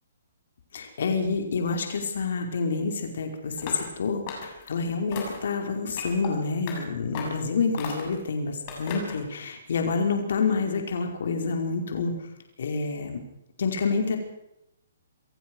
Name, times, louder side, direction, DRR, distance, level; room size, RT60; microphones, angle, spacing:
voice 1, 0.7-12.1 12.6-13.2 13.6-14.2, left 4 dB, 65° left, 4 dB, 5.2 m, -28 dB
sound 1, 3.6-3.9 4.3-4.7 5.1-5.5 6.0-6.3 6.7-6.8 7.1-7.4 7.8-8.2 8.7-9.2, left 5 dB, 35° left, 7.6 m, -36 dB
27.5 x 16.0 x 6.5 m, 0.83 s
hypercardioid pair, 155°, 0 cm